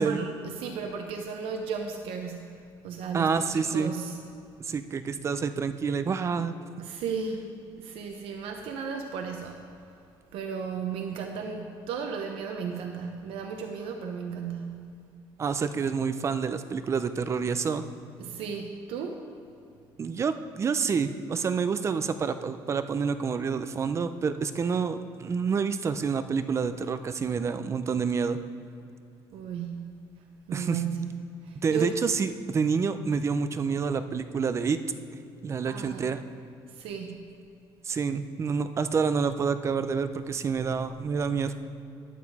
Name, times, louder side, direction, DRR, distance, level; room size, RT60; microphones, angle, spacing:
voice 1, 0.0-4.2 6.8-9.7 10.3-14.9 18.2-19.2 29.3-30.0 30.5-32.0 35.6-36.1 36.7-37.3, right 6 dB, 90° right, 3 dB, 0.8 m, -35 dB
voice 2, 3.1-3.9 4.6-6.5 15.4-17.8 20.0-28.4 30.5-30.8 31.6-34.8 35.4-36.2 37.8-41.5, right 5 dB, 30° right, 11 dB, 0.5 m, -28 dB
9.8 x 9.1 x 4.8 m, 2.6 s
cardioid pair, 145°, 9 cm